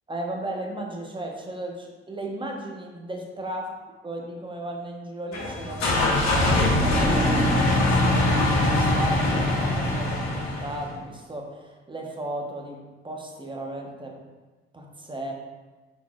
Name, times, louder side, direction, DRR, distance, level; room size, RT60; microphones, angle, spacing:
voice 1, 0.1-3.7 4.0-7.3 7.6-14.2 14.7-15.3, right 1 dB, 15° right, 0 dB, 0.8 m, -35 dB
sound 1, 5.3-10.9, left 1 dB, 65° left, 1.0 m, -22 dB
4.2 x 4.0 x 2.3 m, 1.3 s
hypercardioid pair, 45°, 30 cm